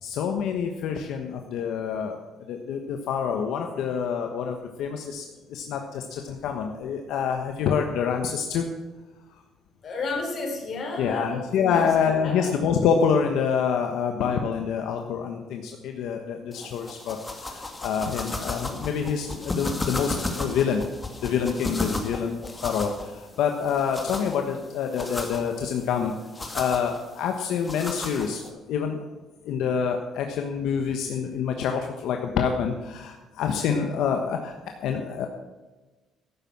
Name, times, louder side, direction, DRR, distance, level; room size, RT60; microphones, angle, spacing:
voice 1, 0.0-8.7 11.0-17.2 17.4-20.8 21.2-26.1 26.5-29.0 29.4-34.5 34.8-35.3, left 7 dB, 75° left, 4 dB, 1.2 m, -27 dB
voice 2, 9.8-11.9 12.2-12.5, left 3 dB, 45° left, 2 dB, 3.9 m, -32 dB
sound 1, 16.5-28.5, left 2 dB, 15° left, 2.0 m, -35 dB
12.5 x 9.5 x 7.3 m, 1.2 s
cardioid pair, 115°, 0 cm